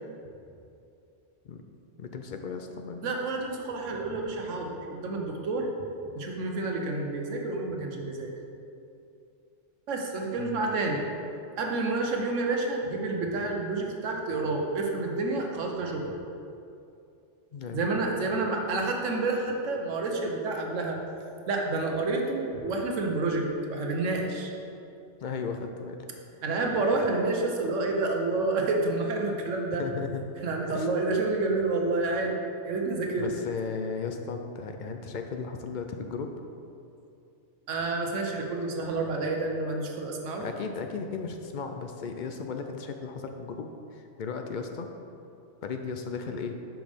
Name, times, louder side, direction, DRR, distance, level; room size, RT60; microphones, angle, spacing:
voice 1, 2.0-3.1 10.4-10.6 17.5-17.8 25.2-26.0 29.7-30.2 30.7-30.9 33.2-36.3 40.4-44.9 45.6-46.5, left 5 dB, 60° left, 5 dB, 0.5 m, -35 dB
voice 2, 3.0-5.7 6.1-8.3 9.9-11.0 11.6-16.1 17.7-21.0 21.5-24.5 26.4-29.8 30.4-33.3 37.7-40.4, right 3 dB, 80° right, 1 dB, 1.2 m, -29 dB
6.2 x 5.2 x 5.1 m, 2.6 s
omnidirectional pair, 1.3 m